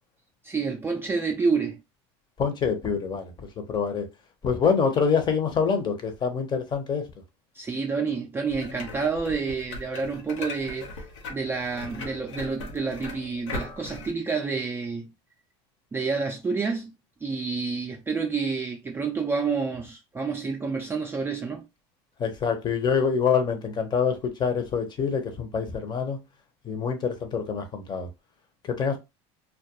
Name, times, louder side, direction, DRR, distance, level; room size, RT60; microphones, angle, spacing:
voice 1, 0.4-1.8 7.5-10.9 11.3-15.1 15.9-16.9 17.2-21.7, right 4 dB, 15° right, 0.4 m, -29 dB
voice 2, 2.4-4.1 4.4-7.1 22.2-26.2 26.6-28.1 28.6-29.0, left 6 dB, 30° left, 0.7 m, -26 dB
sound 1, 8.5-14.1, left 3 dB, 90° left, 0.8 m, -39 dB
2.3 x 2.2 x 2.8 m
supercardioid pair, 110°, 15 cm